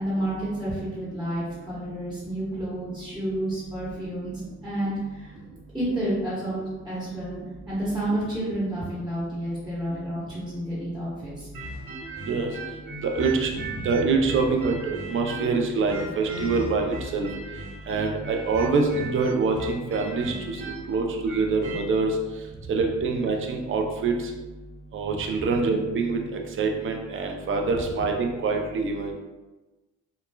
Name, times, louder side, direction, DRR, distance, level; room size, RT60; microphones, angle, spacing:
voice 1, 0.0-5.3 5.7-7.4 7.7-11.5 13.7-14.0 22.6-22.7, right 1 dB, ahead, -9 dB, 1.0 m, -30 dB
sound 1, 11.5-15.6 15.9-21.8, right 2 dB, 75° right, 1.2 m, -37 dB
voice 2, 13.0-13.5 13.8-17.3 17.9-20.6 20.9-22.1 22.7-24.1 24.9-29.1, right 4 dB, 45° right, 2 dB, 0.5 m, -25 dB
3.1 x 2.2 x 2.2 m, 1.2 s
cardioid pair, 90°, 30 cm